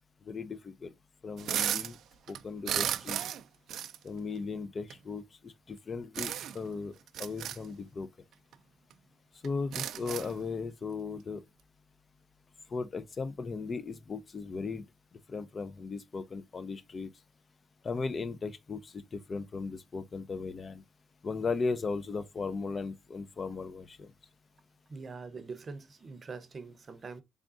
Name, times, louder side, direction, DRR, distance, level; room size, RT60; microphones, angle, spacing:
voice 1, 0.3-0.9 1.2-2.0 2.3-3.2 4.0-6.9 7.2-8.1 9.4-11.4 12.7-14.8 15.3-17.1 17.8-20.8 21.2-24.1, left 4 dB, 40° left, 0.5 m, -37 dB
sound 1, 1.4-1.9 2.3-3.4 3.7-4.0 4.9-5.0 6.1-6.6 7.1-7.6 8.5-8.6 8.9-9.0 9.4-10.4, right 10 dB, 75° right, 0.3 m, -34 dB
voice 2, 24.9-27.2, right 4 dB, 40° right, 0.7 m, -43 dB
3.6 x 3.6 x 2.4 m
cardioid pair, 90°, 0 cm